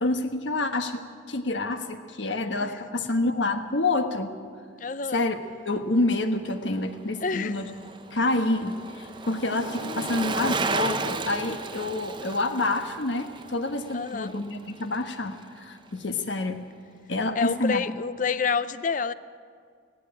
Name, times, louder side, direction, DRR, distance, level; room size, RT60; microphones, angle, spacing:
voice 1, 0.0-4.3 5.1-5.4 5.6-7.7 8.1-16.6 17.1-17.8, left 2 dB, 75° left, 7 dB, 1.3 m, -28 dB
voice 2, 4.8-5.2 7.2-7.5 9.8-10.4 13.9-14.3 17.4-19.1, left 5 dB, 40° left, 15 dB, 0.5 m, -29 dB
Bicycle, 6.7-15.1 15.4-15.5, right 3 dB, 25° right, 0.8 m, -34 dB
17.0 x 16.0 x 9.9 m, 2.1 s
head